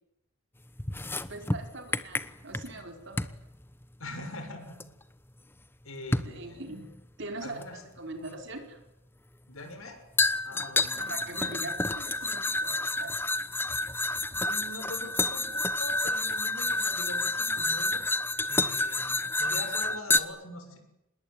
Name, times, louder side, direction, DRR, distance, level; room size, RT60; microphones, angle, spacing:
sound 1, 0.8-2.8 3.2-3.4 4.8-4.9 6.1-6.4 7.6-7.7 10.2-20.2, left 2 dB, 10° left, 1.0 m, -29 dB
voice 1, 1.3-3.2 6.2-8.8 11.0-13.2, right 2 dB, 55° right, 4 dB, 4.8 m, -42 dB
voice 2, 4.0-4.8 5.8-6.7 7.4-7.8 9.5-10.0 10.4-11.5 14.0-18.1 18.5-20.8, left 2 dB, 80° left, 5 dB, 6.9 m, -43 dB
26.5 x 20.5 x 9.6 m, 0.87 s
head